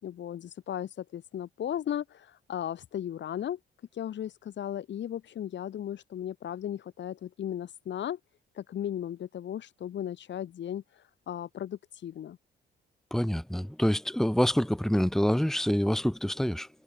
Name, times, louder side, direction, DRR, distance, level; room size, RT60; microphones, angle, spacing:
voice 1, 0.0-3.6 3.9-8.2 8.6-10.8 11.3-12.4, left 10 dB, 65° left, 4.1 m, -36 dB
voice 2, 13.1-16.7, equal, ahead, 2.0 m, -26 dB
cardioid pair, 90°, 20 cm